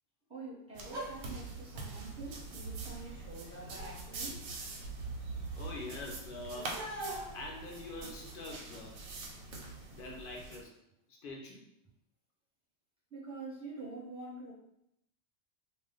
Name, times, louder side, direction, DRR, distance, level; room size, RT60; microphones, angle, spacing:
voice 1, 0.3-4.5 13.1-14.5, right 3 dB, 5° right, -8 dB, 0.7 m, -46 dB
sound 1, 0.7-10.6, right 3 dB, 85° right, 1.0 m, -44 dB
sound 2, 0.8-8.3, right 1 dB, 45° right, 0.6 m, -48 dB
voice 2, 5.6-6.8 7.3-8.9 9.9-10.7 11.1-11.7, left 2 dB, 65° left, -1 dB, 0.5 m, -44 dB
2.3 x 2.1 x 3.7 m, 0.80 s
omnidirectional pair, 1.4 m